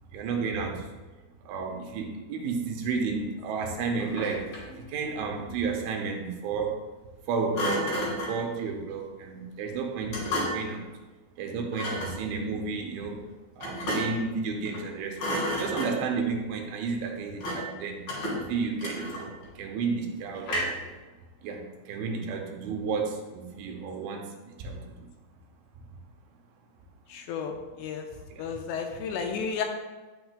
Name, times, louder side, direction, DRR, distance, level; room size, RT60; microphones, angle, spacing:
voice 1, 0.1-0.9 1.5-4.5 4.9-6.8 7.3-10.9 11.4-13.2 13.6-18.0 18.3-20.8 21.4-24.9 28.3-28.5, right 4 dB, 90° right, 2 dB, 3.4 m, -32 dB
Thump thud, 4.0-4.8 7.5-8.4 10.1-10.8 11.7-12.2 13.6-14.3 14.6-14.9 15.2-16.2 17.4-17.8 18.1-19.4 20.4-20.9, equal, 45° left, 3.3 m, -32 dB
voice 2, 27.1-28.1 28.4-29.6, left 6 dB, 80° left, 3 dB, 2.6 m, -32 dB
11.5 x 7.8 x 2.2 m, 1.2 s
omnidirectional pair, 5.4 m